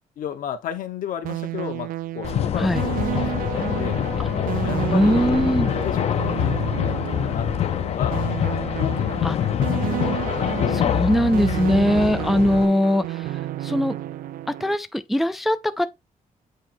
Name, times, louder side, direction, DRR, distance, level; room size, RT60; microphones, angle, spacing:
voice 1, 0.2-3.1 3.4-4.0 4.6-6.6 6.9-8.2 8.8-9.9, left 9 dB, 75° left, 1.1 m, -34 dB
sound 1, 1.2-14.8, right 13 dB, 80° right, 0.4 m, -31 dB
sound 2, 2.2-12.6, left 10 dB, 50° left, 0.5 m, -25 dB
voice 2, 4.9-5.7 9.2-9.4 10.7-14.0 14.6-15.9, equal, ahead, 0.3 m, -21 dB
7.9 x 3.0 x 4.4 m
wide cardioid pair, 175°, 14 cm